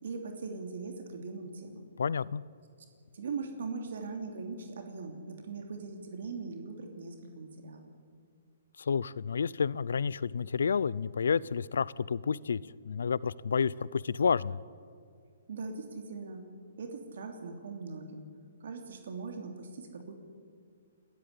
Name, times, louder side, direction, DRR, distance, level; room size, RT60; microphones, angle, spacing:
voice 1, 0.0-1.8 3.1-7.9 15.5-16.4 16.8-18.3 18.6-20.1, right 4 dB, 70° right, 4 dB, 3.0 m, -40 dB
voice 2, 2.0-2.4 8.8-12.6 12.8-14.6, left 6 dB, 80° left, 22 dB, 0.6 m, -30 dB
21.0 x 14.0 x 9.8 m, 2.2 s
hypercardioid pair, 145°, 0 cm